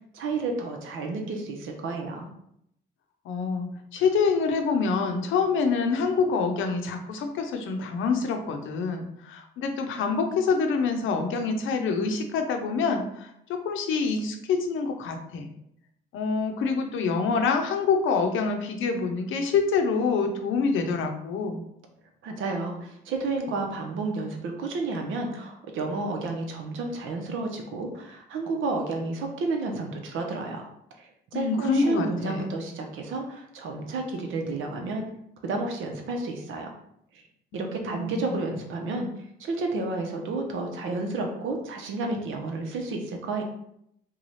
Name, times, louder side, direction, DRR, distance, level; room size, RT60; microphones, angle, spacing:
voice 1, 0.1-2.3 22.2-30.7 31.0-35.1 35.4-36.7 37.5-39.1 39.4-43.4, right 3 dB, 80° right, 3 dB, 0.7 m, -31 dB
voice 2, 3.3-15.5 16.1-21.6 31.3-32.4 37.5-38.4, left 5 dB, 80° left, 5 dB, 0.6 m, -26 dB
3.1 x 2.3 x 4.0 m, 0.75 s
cardioid pair, 90°, 20 cm